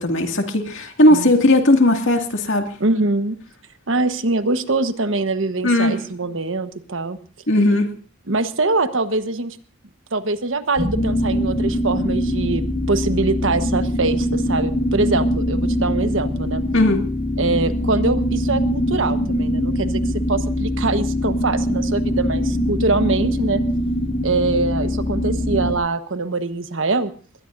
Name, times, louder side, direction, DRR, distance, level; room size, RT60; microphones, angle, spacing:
voice 1, 0.0-2.7 5.6-6.0 7.5-7.9 16.7-17.0, left 1 dB, 75° left, 4 dB, 2.3 m, -17 dB
voice 2, 2.8-3.4 3.9-7.2 8.3-9.6 10.1-16.6 17.4-23.6 24.2-27.1, right 3 dB, 85° right, 9 dB, 1.3 m, -23 dB
sound 1, 10.8-25.7, left 1 dB, 35° left, 2.4 m, -22 dB
22.0 x 19.5 x 2.7 m, 0.41 s
head